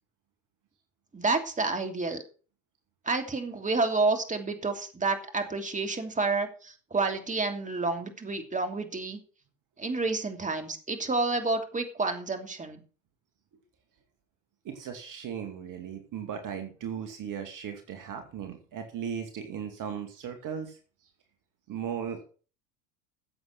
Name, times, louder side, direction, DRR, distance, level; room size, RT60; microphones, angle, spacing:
voice 1, 1.1-2.2 3.0-9.2 9.8-12.8, right 3 dB, 15° right, 6 dB, 3.0 m, -29 dB
voice 2, 14.6-20.8 21.7-22.2, right 8 dB, 40° right, 5 dB, 2.4 m, -37 dB
14.5 x 7.9 x 6.1 m, 0.39 s
hypercardioid pair, 80°, 46 cm